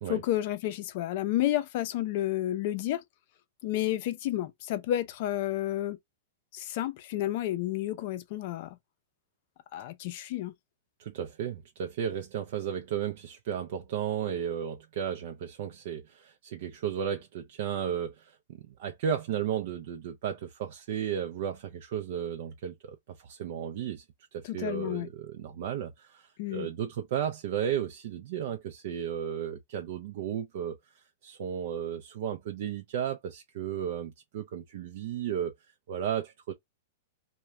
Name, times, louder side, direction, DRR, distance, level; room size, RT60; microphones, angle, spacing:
voice 1, 0.1-3.0 3.6-6.0 6.5-8.8 9.7-10.5 24.4-25.1 26.4-26.7, left 13 dB, 55° left, 0.4 m, -31 dB
voice 2, 11.0-18.4 18.7-24.0 24.3-35.5 35.9-36.5, right 9 dB, 60° right, 0.4 m, -34 dB
2.3 x 2.1 x 3.0 m
hypercardioid pair, 125°, 0 cm